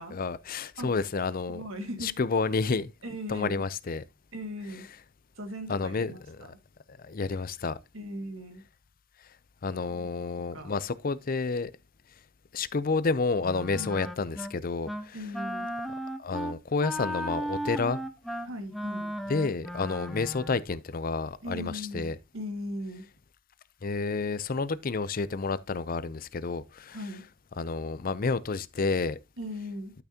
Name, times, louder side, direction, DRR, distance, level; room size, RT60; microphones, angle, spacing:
voice 1, 0.1-1.6 2.0-2.9 3.3-4.0 5.7-6.5 7.0-7.8 9.6-11.7 12.5-15.2 16.2-18.0 19.3-22.2 23.8-27.0 27.6-29.2, left 4 dB, 45° left, 0.5 m, -30 dB
voice 2, 1.5-2.1 3.0-3.7 4.3-4.9 5.4-6.6 7.9-8.6 9.9-10.8 13.7-14.1 15.1-15.7 18.4-19.1 21.4-23.0 26.9-27.2 29.4-29.9, equal, 75° right, 2.0 m, -39 dB
Wind instrument woodwind instrument, 13.4-14.5 14.8-15.1 15.3-20.6, equal, ahead, 0.7 m, -35 dB
12.5 x 5.9 x 2.8 m
head